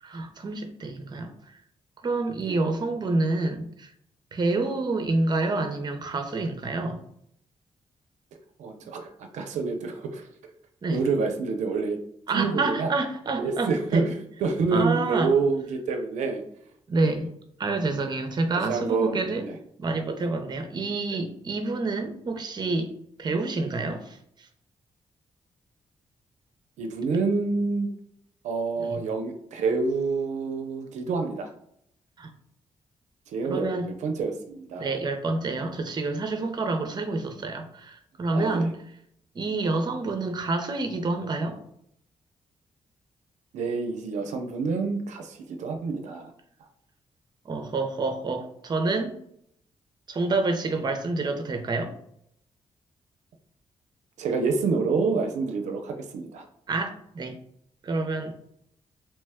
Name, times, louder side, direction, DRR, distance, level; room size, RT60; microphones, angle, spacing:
voice 1, 0.0-1.6 2.0-3.9 4.3-7.0 10.8-11.0 12.3-14.1 14.7-15.3 16.9-17.3 17.6-19.5 19.8-22.9 23.2-24.5 28.8-29.0 32.2-32.3 33.4-33.9 34.8-38.7 39.3-41.6 47.5-49.1 50.1-51.9 56.7-57.4 57.8-58.3, right 3 dB, 35° right, 6 dB, 0.5 m, -28 dB
voice 2, 8.6-10.3 10.9-12.0 12.3-12.9 13.4-16.4 17.0-17.2 18.7-19.6 23.2-23.4 26.8-27.9 28.4-31.5 33.3-33.7 34.0-35.0 38.3-38.7 43.5-46.3 46.6-46.7 54.2-56.4, right 4 dB, 85° right, 5 dB, 0.4 m, -27 dB
2.9 x 2.1 x 3.4 m, 0.71 s
cardioid pair, 75°, 12 cm